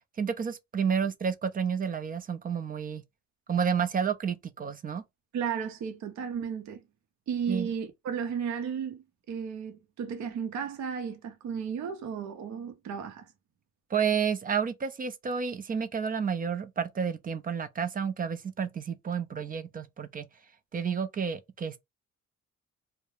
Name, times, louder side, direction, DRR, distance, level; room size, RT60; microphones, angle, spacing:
voice 1, 0.2-3.0 3.5-5.0 7.5-7.7 13.9-20.3 20.7-21.8, right 7 dB, 30° right, 0.4 m, -30 dB
voice 2, 5.3-6.8 7.3-13.3, right 7 dB, 65° right, 0.6 m, -34 dB
2.3 x 2.1 x 3.0 m
cardioid pair, 90°, 30 cm